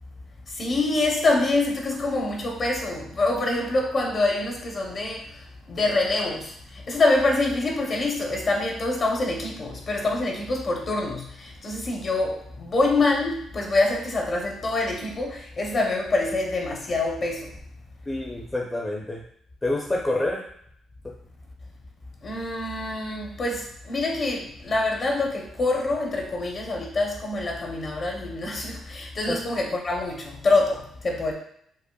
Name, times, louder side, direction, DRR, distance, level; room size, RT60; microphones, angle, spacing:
voice 1, 0.6-5.2 5.7-6.5 6.9-17.5 22.2-31.3, left 2 dB, 45° left, 1 dB, 0.8 m, -25 dB
voice 2, 18.1-19.2 19.6-20.5 21.0-21.1 29.3-29.4, left 2 dB, 15° left, -2 dB, 0.6 m, -27 dB
5.4 x 2.0 x 2.3 m, 0.68 s
cardioid pair, 90°, 0 cm